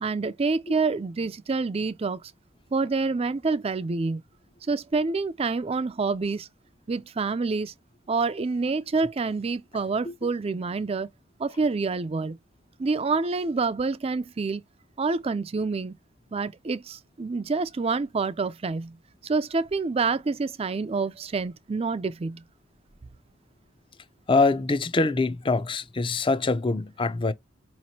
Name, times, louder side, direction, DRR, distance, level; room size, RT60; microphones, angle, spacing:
voice 1, 0.0-2.2 2.7-4.2 4.7-6.5 6.9-7.7 8.1-11.1 11.4-12.4 12.8-14.6 15.0-15.9 16.3-18.9 19.2-22.4, right 4 dB, 30° right, 0.4 m, -27 dB
voice 2, 24.3-27.3, left 3 dB, 25° left, 0.5 m, -24 dB
5.0 x 2.9 x 2.8 m
head